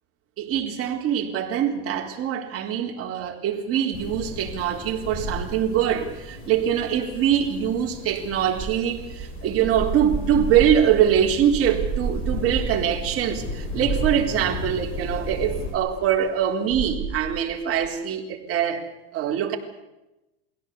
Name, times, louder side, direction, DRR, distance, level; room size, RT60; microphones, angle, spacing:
voice 1, 0.4-19.6, right 9 dB, 45° right, 3.9 m, -23 dB
sound 1, 3.9-15.7, left 2 dB, 40° left, 6.8 m, -35 dB
sound 2, 8.6-17.9, right 6 dB, 25° right, 7.2 m, -32 dB
22.5 x 17.0 x 8.4 m
supercardioid pair, 120°, 32 cm